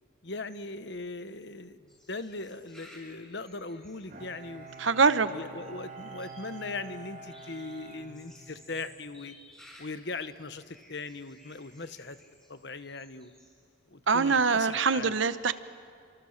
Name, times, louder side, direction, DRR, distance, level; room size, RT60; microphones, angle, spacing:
voice 1, 0.2-4.7 5.3-9.3 9.8-12.2 12.5-13.3 13.9-15.1, left 3 dB, 60° left, 11 dB, 1.1 m, -39 dB
sound 1, 1.9-13.6 14.2-14.8, left 1 dB, 5° left, 7.4 m, -57 dB
Bowed string instrument, 4.1-8.9, right 3 dB, 45° right, 3.2 m, -47 dB
voice 2, 4.8-5.3 14.1-15.5, right 5 dB, 75° right, 12 dB, 1.0 m, -24 dB
30.0 x 26.5 x 6.6 m, 2.4 s
head